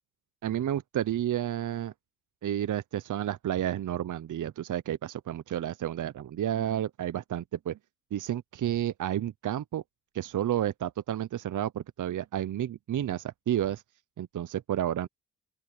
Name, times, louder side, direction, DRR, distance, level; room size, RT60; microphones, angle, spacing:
voice 1, 0.4-1.9 2.4-7.8 8.1-9.8 10.1-13.8 14.2-15.1, right 11 dB, 55° right, 0.8 m, -31 dB
open air
supercardioid pair, 55°, 36 cm